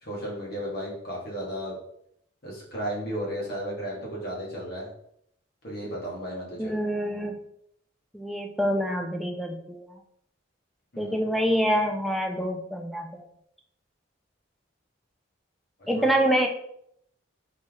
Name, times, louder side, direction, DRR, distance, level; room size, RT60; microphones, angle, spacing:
voice 1, 0.0-1.8 2.4-4.9 5.6-6.7 10.9-11.2 15.9-16.1, equal, 50° left, -4 dB, 1.6 m, -34 dB
voice 2, 6.6-7.4 8.1-10.0 11.0-13.2 15.9-16.5, equal, ahead, 3 dB, 0.5 m, -26 dB
4.2 x 3.4 x 3.6 m, 0.73 s
head